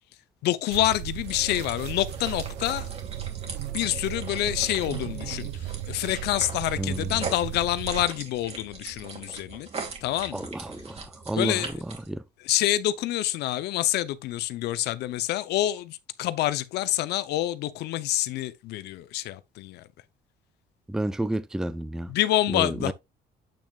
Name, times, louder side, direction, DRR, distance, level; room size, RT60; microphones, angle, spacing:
voice 1, 0.4-2.9 3.4-9.7 10.0-10.5 11.4-11.7 12.4-19.9 22.1-22.9, left 14 dB, 80° left, 0.7 m, -27 dB
sound 1, 0.7-8.1, right 14 dB, 80° right, 0.5 m, -36 dB
sound 2, 1.3-12.1, right 4 dB, 40° right, 2.7 m, -40 dB
voice 2, 6.8-7.2 10.3-12.2 20.9-22.1 22.5-22.9, right 1 dB, 5° right, 0.4 m, -31 dB
8.5 x 6.2 x 2.4 m
cardioid pair, 110°, 17 cm